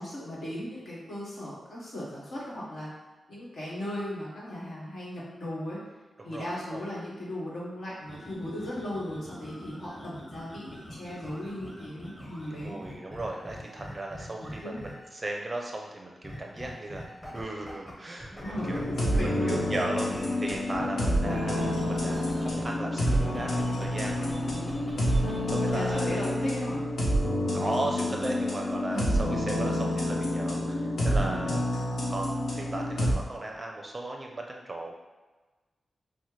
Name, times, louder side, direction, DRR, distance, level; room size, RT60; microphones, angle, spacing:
voice 1, 0.0-2.9 3.3-5.8 6.2-12.8 14.4-14.8 18.4-19.8 24.2-24.8 25.7-26.8 28.9-29.4 31.2-31.6, left 1 dB, 70° left, -6 dB, 1.3 m, -37 dB
voice 2, 6.2-6.9 12.5-17.1 17.3-18.8 19.2-20.1 20.4-24.3 25.5-26.3 27.5-31.8 32.1-34.9, right 2 dB, 25° right, 1 dB, 0.5 m, -36 dB
sound 1, 8.0-15.2 16.2-17.9 18.2-22.6 23.0-26.1, equal, 10° left, 0.8 m, -44 dB
Piano and drums, 18.6-33.1, left 1 dB, 90° left, 0.7 m, -28 dB
5.6 x 2.1 x 3.1 m, 1.2 s
wide cardioid pair, 125°, 0 cm